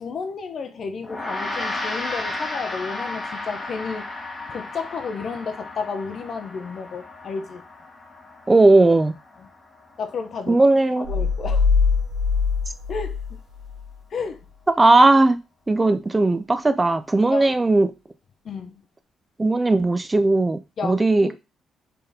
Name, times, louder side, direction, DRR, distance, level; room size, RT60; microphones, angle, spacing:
voice 1, 0.0-4.1 4.5-7.6 10.0-10.6 11.0-11.7 12.9-13.4 14.1-14.4 17.3-17.5 18.4-18.7 20.8-21.4, left 5 dB, 55° left, 0.6 m, -32 dB
Gong, 1.0-10.7, left 2 dB, 20° left, 1.3 m, -34 dB
voice 2, 8.5-9.1 10.5-11.1 14.7-15.4 15.7-17.9 19.4-21.4, right 2 dB, 20° right, 0.3 m, -17 dB
sound 1, 11.0-13.9, left 5 dB, 55° right, 1.0 m, -22 dB
3.9 x 3.4 x 2.7 m
cardioid pair, 90°, 0 cm